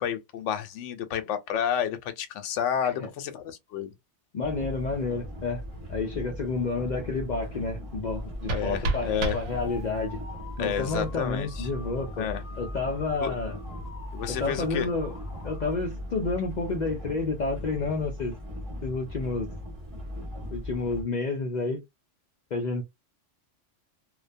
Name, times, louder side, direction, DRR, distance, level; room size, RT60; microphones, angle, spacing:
voice 1, 0.0-3.9 8.5-9.4 10.6-11.7 12.2-12.4 13.2-13.3 14.1-14.9, left 9 dB, 80° left, 0.9 m, -30 dB
voice 2, 4.3-5.6 5.9-10.2 10.6-12.3 12.6-13.6 14.3-15.1 15.4-18.3 18.8-19.5 20.5-21.8 22.5-22.8, left 3 dB, 60° left, 0.5 m, -30 dB
sound 1, 4.4-21.0, left 1 dB, 25° right, 1.0 m, -38 dB
sound 2, 8.0-10.1, right 3 dB, 75° right, 0.9 m, -32 dB
sound 3, 8.8-15.7, left 3 dB, 25° left, 1.0 m, -49 dB
2.3 x 2.1 x 2.5 m
omnidirectional pair, 1.2 m